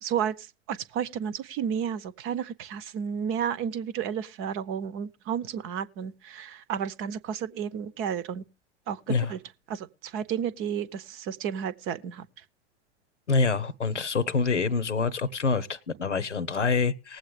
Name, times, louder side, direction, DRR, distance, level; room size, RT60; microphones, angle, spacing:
voice 1, 0.0-0.3 0.7-8.4 8.9-9.4 9.7-12.3, right 8 dB, 35° right, 0.8 m, -32 dB
voice 2, 13.3-17.2, left 4 dB, 90° left, 0.9 m, -26 dB
19.5 x 7.9 x 3.3 m
figure-of-eight pair, 90°, 35 cm